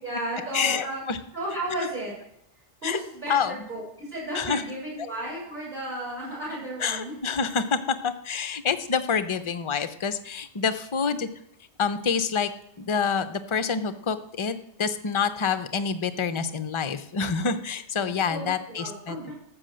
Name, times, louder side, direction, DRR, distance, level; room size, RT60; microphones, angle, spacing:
voice 1, 0.0-1.0 1.3-2.1 2.8-7.1 18.3-19.3, right 1 dB, 35° right, -5 dB, 6.6 m, -33 dB
voice 2, 0.5-1.2 2.8-3.0 3.3-3.5 4.3-4.6 6.8-11.3 11.8-12.5 12.8-19.3, left 6 dB, 35° left, 9 dB, 0.5 m, -27 dB
13.0 x 6.2 x 7.7 m, 0.77 s
omnidirectional pair, 1.2 m